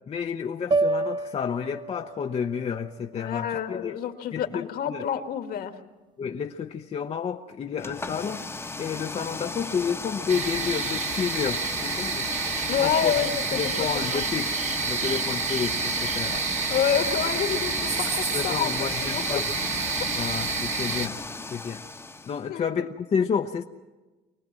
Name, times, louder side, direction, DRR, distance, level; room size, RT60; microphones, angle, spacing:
voice 1, 0.1-4.0 4.3-5.1 6.2-8.4 8.8-12.3 12.8-13.1 13.5-14.6 14.9-16.4 18.3-19.4 20.2-21.2 21.5-21.8 22.2-23.6, left 7 dB, 35° left, 4 dB, 0.8 m, -30 dB
sound 1, 0.7-5.0, right 3 dB, 25° right, 0.7 m, -31 dB
voice 2, 3.1-5.7 12.7-13.6 14.1-14.2 16.7-18.7 19.0-19.2 19.9-20.0 22.3-22.8, left 9 dB, 65° left, 7 dB, 1.7 m, -28 dB
sound 2, 7.8-22.4, left 3 dB, 15° left, 1.0 m, -36 dB
sound 3, 10.3-21.1, right 4 dB, 45° right, 1.7 m, -29 dB
24.5 x 19.0 x 7.5 m, 1.2 s
cardioid pair, 110°, 17 cm